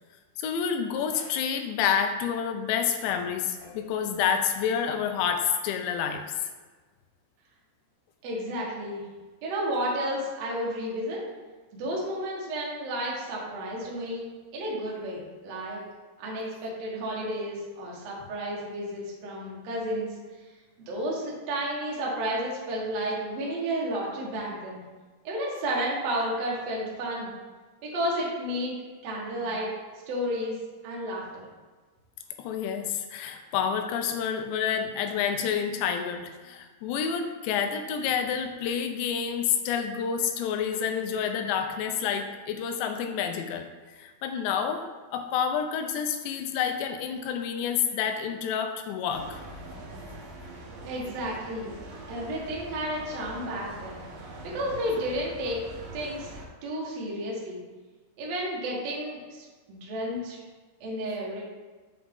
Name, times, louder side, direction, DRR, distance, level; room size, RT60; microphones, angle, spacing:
voice 1, 0.4-6.3 32.4-43.7 44.0-44.8 45.1-49.4, left 7 dB, 80° left, 5 dB, 2.8 m, -28 dB
voice 2, 8.2-9.0 9.4-11.2 11.7-14.3 14.5-15.8 16.2-20.1 20.8-24.8 25.2-27.3 27.8-28.8 29.0-29.7 30.1-30.5 30.8-31.5 50.8-51.7 52.1-54.0 54.4-55.6 55.9-56.3 56.6-57.6 58.2-60.4 60.8-61.4, equal, 90° right, -4 dB, 1.4 m, -32 dB
sound 1, 49.1-56.4, right 1 dB, 65° right, 2.4 m, -43 dB
7.1 x 4.9 x 3.6 m, 1.3 s
omnidirectional pair, 5.3 m